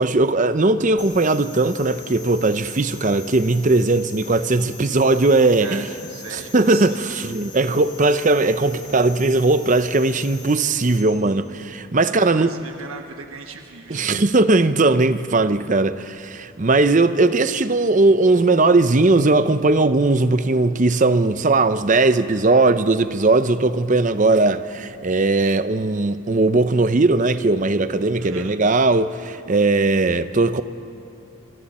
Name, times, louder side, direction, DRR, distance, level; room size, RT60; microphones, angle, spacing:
voice 1, 0.0-5.9 6.3-12.5 13.9-30.6, right 2 dB, 35° right, 0.6 m, -18 dB
sound 1, 1.0-11.0, left 5 dB, 20° left, 2.4 m, -42 dB
voice 2, 6.1-7.0 12.0-14.2 28.2-28.6, right 5 dB, 75° right, 1.2 m, -38 dB
27.0 x 26.5 x 4.3 m
head